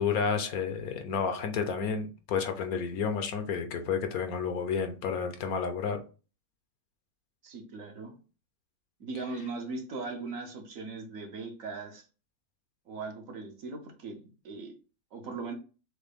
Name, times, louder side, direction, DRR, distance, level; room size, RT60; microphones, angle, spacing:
voice 1, 0.0-6.0, left 6 dB, 75° left, 6 dB, 1.2 m, -31 dB
voice 2, 7.4-8.2 9.0-12.0 12.9-14.7 15.1-15.5, right 3 dB, 65° right, 3 dB, 1.3 m, -39 dB
6.3 x 2.2 x 3.4 m, 0.35 s
omnidirectional pair, 1.6 m